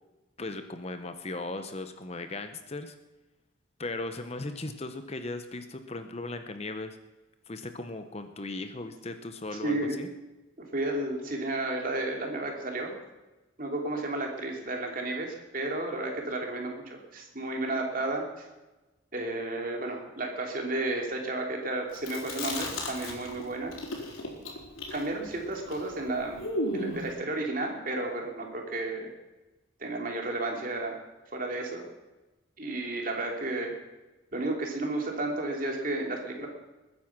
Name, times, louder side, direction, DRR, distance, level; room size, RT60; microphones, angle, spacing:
voice 1, 0.4-2.9 3.8-7.0 7.5-10.1, left 2 dB, 30° left, 8 dB, 0.9 m, -37 dB
voice 2, 9.6-10.0 10.7-12.9 13.6-18.5 19.1-23.7 24.9-26.4 26.7-29.1 29.8-31.0 31.3-31.8 32.6-33.7 34.3-36.5, right 2 dB, 45° right, 2 dB, 3.0 m, -32 dB
Chewing mastication, 21.9-23.4 23.7-27.1, left 1 dB, 90° left, 4.4 m, -34 dB
21.0 x 9.8 x 6.1 m, 1.1 s
head